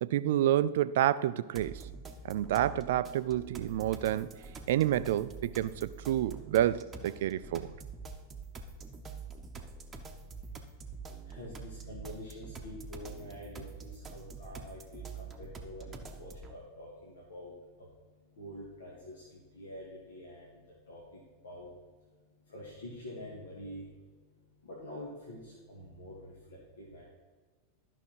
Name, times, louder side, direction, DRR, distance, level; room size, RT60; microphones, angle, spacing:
voice 1, 0.0-1.8 2.2-4.3 4.7-7.7, right 12 dB, 55° right, 0.3 m, -29 dB
sound 1, 1.5-16.5, right 4 dB, 20° right, 0.9 m, -46 dB
voice 2, 11.3-17.5 18.4-20.5 20.9-21.0 21.4-21.7 22.5-23.9 24.6-27.0, left 1 dB, 65° left, 2.0 m, -46 dB
11.5 x 6.1 x 4.6 m
figure-of-eight pair, 90°, 0 cm